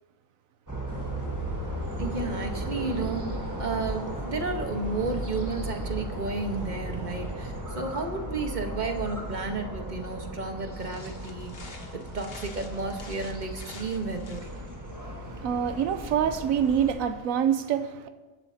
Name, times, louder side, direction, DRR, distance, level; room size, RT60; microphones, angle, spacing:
sound 1, 0.7-17.0, right 1 dB, 15° right, 1.6 m, -36 dB
sound 2, 0.9-7.6, right 1 dB, 70° right, 4.5 m, -41 dB
voice 1, 2.0-3.2 3.5-14.5, right 3 dB, 35° right, 1.3 m, -32 dB
sound 3, 10.7-14.8, left 3 dB, 50° left, 1.4 m, -49 dB
voice 2, 15.0-18.1, right 8 dB, 85° right, 1.1 m, -26 dB
24.0 x 12.0 x 2.8 m
omnidirectional pair, 1.4 m